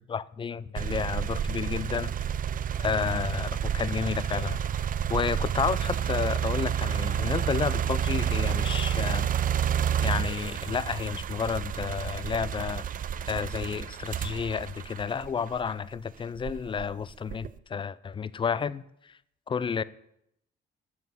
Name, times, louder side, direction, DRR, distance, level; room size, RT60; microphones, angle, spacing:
voice 1, 0.0-2.2 2.8-4.6 5.1-9.3 10.0-12.8 13.3-19.2 19.5-19.8, left 6 dB, 25° left, 0.3 m, -31 dB
sound 1, 0.8-15.8 16.4-17.6, right 9 dB, 45° right, 0.4 m, -30 dB
6.8 x 6.5 x 6.9 m
cardioid pair, 90°, 20 cm